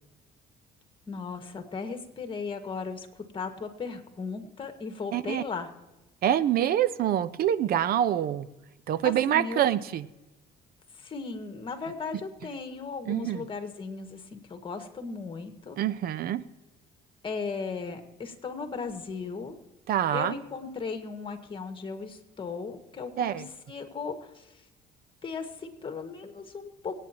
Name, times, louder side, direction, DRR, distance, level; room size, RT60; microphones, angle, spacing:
voice 1, 1.1-3.1 3.3-5.7 9.0-9.6 11.0-15.8 17.2-19.6 20.1-23.4 23.7-24.4 25.2-26.9, left 4 dB, 30° left, 7 dB, 1.8 m, -36 dB
voice 2, 5.1-5.4 6.2-8.5 8.9-10.1 13.1-13.4 15.8-16.4 19.9-20.3 23.2-23.5, right 11 dB, 60° right, 16 dB, 0.7 m, -26 dB
24.5 x 9.0 x 3.0 m, 1.0 s
cardioid pair, 110°, 17 cm